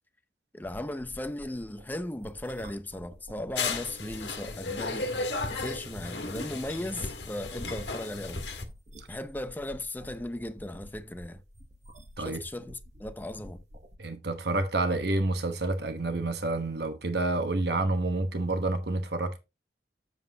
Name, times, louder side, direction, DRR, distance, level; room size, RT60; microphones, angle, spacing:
voice 1, 0.5-5.1 5.5-8.4 9.1-11.4 12.2-13.6, left 1 dB, 10° left, 0.6 m, -37 dB
sound 1, 0.6-14.0, equal, 40° right, 1.1 m, -50 dB
sound 2, 3.5-8.6, left 3 dB, 75° left, 1.5 m, -34 dB
voice 2, 14.0-19.4, right 2 dB, 65° right, 1.1 m, -29 dB
7.8 x 7.4 x 2.8 m
head